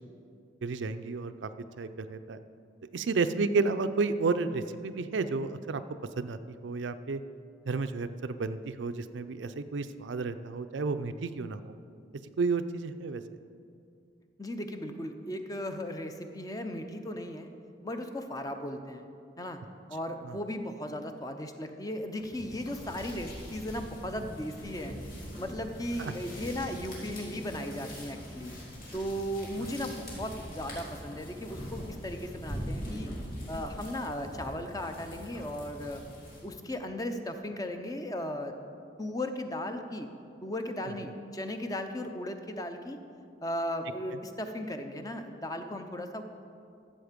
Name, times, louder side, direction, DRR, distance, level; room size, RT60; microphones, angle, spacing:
voice 1, 0.6-1.5 1.8-2.4 2.9-5.8 6.2-6.4 6.6-7.2 7.7-11.7 12.4-13.2 20.2-20.3 26.0-26.1 29.6-29.7, right 4 dB, 90° right, 10 dB, 0.5 m, -31 dB
voice 2, 14.4-17.5 17.8-19.1 19.4-19.6 19.9-25.0 25.4-28.5 28.9-33.1 33.5-36.0 36.4-38.5 39.0-40.1 40.4-43.0 43.4-46.2, left 1 dB, 20° left, 6 dB, 0.6 m, -36 dB
sound 1, 22.2-36.6, equal, 50° left, 2.6 m, -42 dB
13.0 x 7.3 x 5.1 m, 2.5 s
head